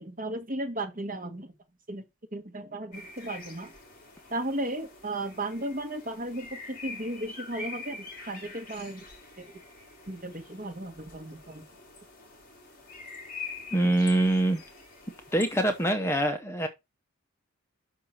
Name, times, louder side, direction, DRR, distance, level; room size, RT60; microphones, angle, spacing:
voice 1, 0.0-1.5 1.9-2.1 2.3-3.7 4.3-9.0 9.4-9.5 10.1-11.6, right 1 dB, 40° right, 1.4 m, -35 dB
sound 1, 2.9-15.9, left 3 dB, 40° left, 2.7 m, -45 dB
voice 2, 13.7-14.6 15.3-16.7, right 1 dB, 10° left, 0.7 m, -24 dB
5.9 x 4.5 x 6.3 m
head